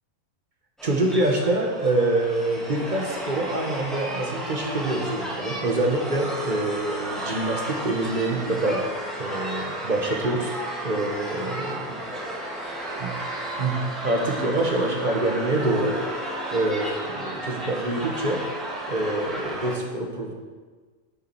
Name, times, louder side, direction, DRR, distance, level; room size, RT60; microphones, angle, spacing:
sound 1, 0.8-19.7, right 1 dB, ahead, 1.5 m, -33 dB
voice 1, 0.8-8.9 9.2-10.6 10.8-12.0 13.0-13.1 13.6-13.8 14.0-16.0 16.5-18.5 18.9-20.3, right 2 dB, 35° right, 2 dB, 1.2 m, -25 dB
9.5 x 7.0 x 4.5 m, 1.4 s
omnidirectional pair, 1.4 m